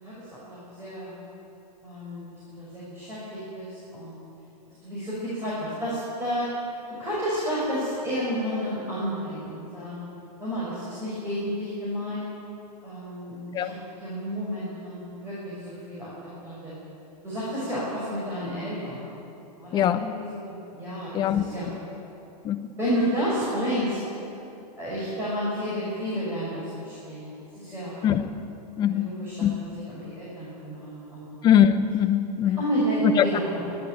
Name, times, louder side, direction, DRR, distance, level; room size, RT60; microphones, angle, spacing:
voice 1, 0.0-1.2 1.8-4.1 4.8-6.7 7.0-10.0 10.4-12.2 12.8-13.7 14.0-16.1 16.4-16.7 17.2-19.1 19.6-21.7 22.8-24.0 24.8-28.1 28.9-29.4 29.9-31.2 32.6-33.6, equal, 10° right, -9 dB, 5.8 m, -31 dB
voice 2, 19.7-20.1 21.1-21.4 22.4-22.6 28.0-28.3 28.8-29.1 29.4-29.5 31.4-32.6 33.0-33.3, left 10 dB, 20° left, 8 dB, 0.8 m, -21 dB
24.5 x 11.5 x 9.2 m, 2.8 s
supercardioid pair, 160°, 21 cm